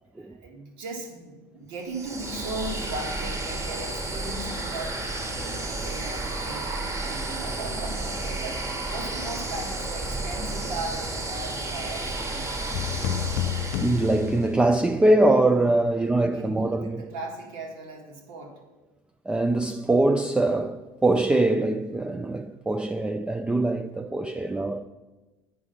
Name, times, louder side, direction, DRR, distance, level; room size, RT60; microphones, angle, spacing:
voice 1, 0.2-5.0 5.4-12.5 15.8-18.6, right 2 dB, 75° right, 1.8 m, -38 dB
sound 1, 1.9-14.5, right 2 dB, 30° right, 1.5 m, -32 dB
sound 2, 12.7-15.0, left 11 dB, 70° left, 0.4 m, -30 dB
voice 2, 13.8-17.0 19.3-24.8, right 2 dB, 10° right, 0.4 m, -23 dB
8.7 x 4.8 x 5.7 m
hypercardioid pair, 80°, 10 cm